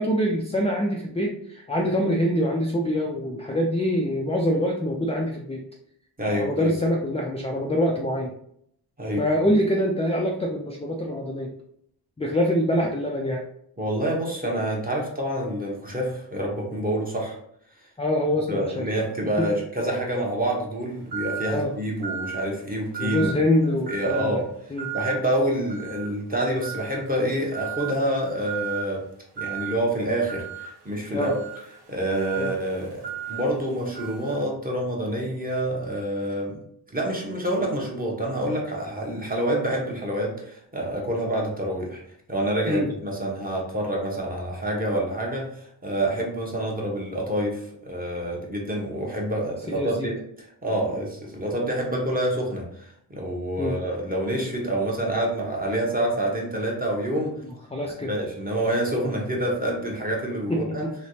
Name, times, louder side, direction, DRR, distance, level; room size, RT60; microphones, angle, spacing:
voice 1, 0.0-5.6 6.3-8.3 9.2-11.5 12.2-13.4 18.0-18.9 19.4-19.5 21.5-21.7 23.0-24.4 24.7-24.9 31.1-31.3 32.4-32.5 42.7-42.9 49.7-50.1 53.6-53.8 57.7-58.1 60.5-60.9, equal, 15° left, -1 dB, 0.4 m, -25 dB
voice 2, 6.2-6.7 9.0-9.3 13.8-17.4 18.5-23.3 23.9-24.5 24.9-29.0 29.4-31.4 31.9-36.6 36.9-42.0 42.3-57.3 58.1-60.9, right 1 dB, 20° right, -1 dB, 1.0 m, -27 dB
sound 1, 21.1-21.6 22.0-22.5 22.9-23.4 23.9-24.3 24.8-25.2 25.7-26.1 26.6-27.1 27.5-28.0 28.4-28.9 29.4-29.8 30.3-34.5, right 8 dB, 65° right, 0.9 m, -35 dB
3.3 x 2.9 x 2.7 m, 0.69 s
wide cardioid pair, 90°, 43 cm